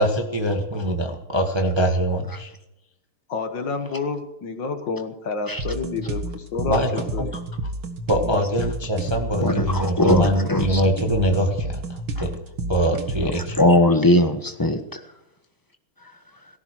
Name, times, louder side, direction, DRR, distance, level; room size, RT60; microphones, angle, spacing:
voice 1, 0.0-2.5 6.7-6.9 7.2-7.3 8.1-12.3 12.7-13.6, equal, 15° right, 2 dB, 1.5 m, -23 dB
voice 2, 3.3-6.8 7.1-7.3 8.2-8.4, left 4 dB, 60° left, 7 dB, 2.0 m, -29 dB
sound 1, 5.6-13.6, right 2 dB, 65° right, 2.4 m, -31 dB
voice 3, 9.4-10.8 13.6-14.8, left 1 dB, 15° left, 7 dB, 0.8 m, -19 dB
17.5 x 15.0 x 4.6 m, 0.89 s
omnidirectional pair, 2.4 m